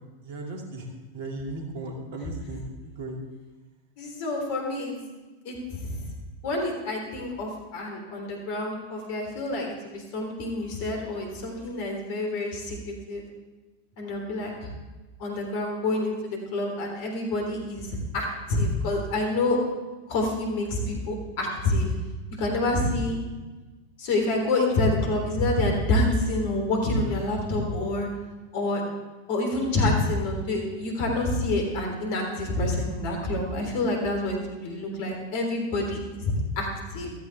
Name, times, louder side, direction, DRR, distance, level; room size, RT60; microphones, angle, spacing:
voice 1, 0.2-0.9 1.1-3.2 22.7-23.0, right 2 dB, 55° right, 2 dB, 2.4 m, -36 dB
voice 2, 4.0-5.1 5.4-6.0 6.4-13.2 14.0-14.7 15.2-19.6 20.1-21.9 22.4-23.2 24.0-28.1 28.5-28.8 29.3-37.1, left 2 dB, 45° left, 2 dB, 3.5 m, -27 dB
15.0 x 13.5 x 3.5 m, 1.2 s
figure-of-eight pair, 90°, 0 cm